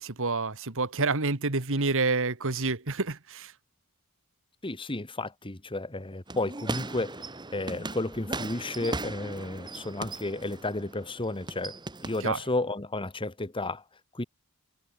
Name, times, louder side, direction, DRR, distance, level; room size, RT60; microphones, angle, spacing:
voice 1, 0.0-3.5 12.2-12.4, right 3 dB, 60° right, 2.0 m, -28 dB
voice 2, 4.6-7.2 7.5-11.8 12.0-13.8 14.1-14.2, left 2 dB, 25° left, 1.6 m, -32 dB
sound 1, 6.3-12.3, right 2 dB, 20° right, 1.2 m, -38 dB
head